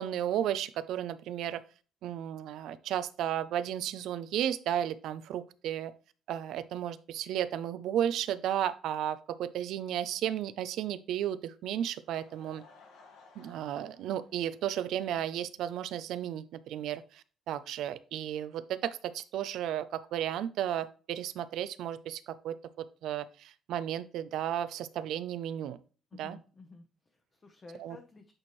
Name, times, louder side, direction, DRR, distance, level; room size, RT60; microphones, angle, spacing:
voice 1, 0.0-1.6 2.0-5.9 6.3-12.6 13.4-25.8 26.2-26.4 27.8-28.0, right 10 dB, 75° right, 14 dB, 0.5 m, -34 dB
Laughter / Crowd, 11.9-15.3 15.6-15.7 16.3-16.4 16.6-16.7, left 4 dB, 85° left, 1.6 m, -59 dB
voice 2, 26.1-28.3, left 3 dB, 25° left, 4 dB, 0.8 m, -52 dB
8.7 x 4.4 x 3.1 m, 0.38 s
cardioid pair, 125°, 0 cm